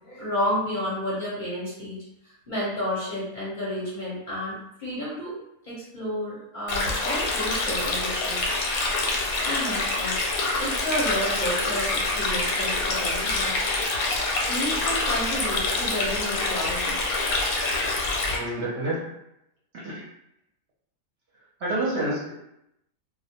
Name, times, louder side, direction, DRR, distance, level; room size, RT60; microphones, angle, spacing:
voice 1, 0.0-2.0 2.2-5.3 5.6-8.5 9.4-10.1 10.6-13.6 14.5-17.0, equal, 45° left, -8 dB, 0.7 m, -31 dB
Stream, 6.7-18.4, left 2 dB, 85° left, 1.0 m, -26 dB
voice 2, 18.3-19.1 19.7-20.0 21.6-22.3, right 1 dB, 60° right, -5 dB, 0.8 m, -28 dB
2.3 x 2.1 x 2.8 m, 0.82 s
omnidirectional pair, 1.5 m